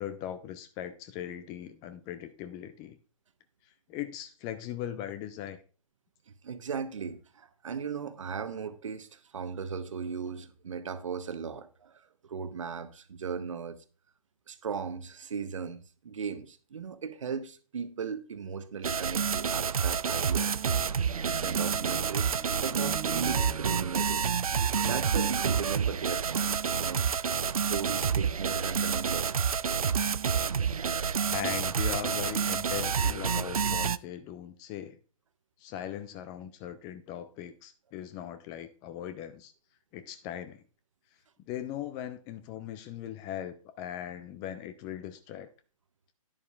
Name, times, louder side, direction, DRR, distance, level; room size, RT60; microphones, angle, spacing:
voice 1, 0.0-3.0 3.9-5.6 31.3-35.0 35.6-39.5 39.9-40.6 41.5-45.5, left 10 dB, 20° left, 0.6 m, -39 dB
voice 2, 6.4-13.8 14.5-20.5 21.1-24.3 24.8-27.3 27.7-29.4, right 6 dB, 60° right, 1.0 m, -37 dB
sound 1, 18.8-34.0, right 6 dB, 80° right, 0.4 m, -28 dB
sound 2, 20.1-26.0 26.6-26.7, right 10 dB, 15° right, 1.6 m, -45 dB
11.0 x 10.5 x 2.4 m
figure-of-eight pair, 125°, 18 cm